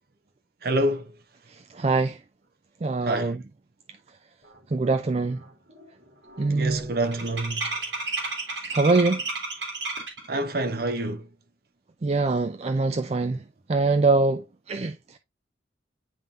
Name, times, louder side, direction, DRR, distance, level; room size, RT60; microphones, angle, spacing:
voice 1, 0.6-1.1 3.0-3.4 6.5-7.7 10.3-11.3, right 1 dB, 55° right, 0.9 m, -27 dB
voice 2, 1.5-2.2 2.8-3.4 4.7-5.4 6.4-6.9 8.6-9.2 12.0-13.4 13.7-15.2, right 3 dB, 35° right, 0.4 m, -24 dB
sound 1, 4.6-4.7 5.1-5.4 5.7-10.3, right 3 dB, 85° right, 3.0 m, -32 dB
10.0 x 3.7 x 2.5 m
head